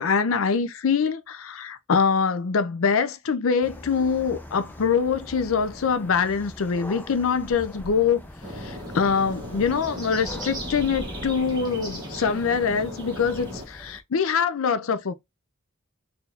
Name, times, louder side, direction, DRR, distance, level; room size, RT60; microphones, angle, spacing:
voice 1, 0.0-8.2 8.6-15.1, left 6 dB, 75° left, 0.5 m, -24 dB
sound 1, 3.6-14.0, left 1 dB, 10° left, 0.5 m, -42 dB
sound 2, 8.4-13.7, equal, 20° right, 1.6 m, -36 dB
4.5 x 2.7 x 3.4 m
head